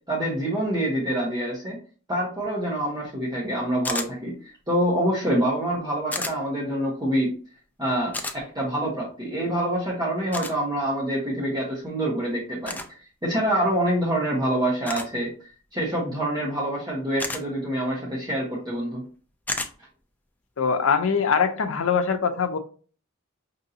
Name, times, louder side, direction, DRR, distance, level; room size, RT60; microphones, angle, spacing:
voice 1, 0.1-1.8 2.1-4.3 4.7-7.3 7.8-8.2 8.5-12.8 13.2-15.3 15.7-19.0, right 1 dB, 20° right, -5 dB, 1.0 m, -26 dB
sound 1, 3.8-4.1 6.1-6.3 8.1-8.4 10.3-10.5 12.6-12.9 14.9-15.1 17.2-17.4 19.5-19.7, left 2 dB, 10° left, 0.3 m, -30 dB
voice 2, 20.6-22.6, left 6 dB, 65° left, 8 dB, 0.5 m, -22 dB
5.3 x 2.6 x 2.7 m, 0.39 s
head